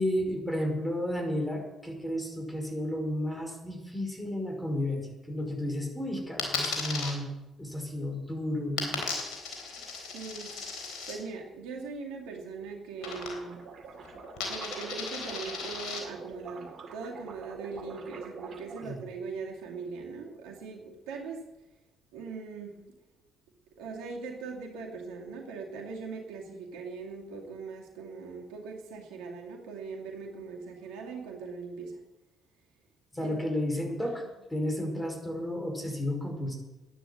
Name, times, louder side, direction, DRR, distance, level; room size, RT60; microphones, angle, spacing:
voice 1, 0.0-7.3 7.6-9.1 18.8-19.0 33.1-34.2 34.5-36.5, left 1 dB, 10° left, 3 dB, 5.3 m, -32 dB
Coin (dropping), 6.4-7.1 8.8-11.2 13.0-13.7 13.9-16.0, left 5 dB, 70° left, 4.0 m, -36 dB
voice 2, 9.5-9.9 10.1-13.7 14.5-21.5 22.1-22.8 23.8-32.0 33.2-33.4 34.2-34.3, right 4 dB, 75° right, 0 dB, 2.4 m, -41 dB
sound 1, 13.0-18.9, right 5 dB, 55° right, 2.4 m, -46 dB
12.5 x 10.0 x 7.9 m, 1.0 s
hypercardioid pair, 50°, 0 cm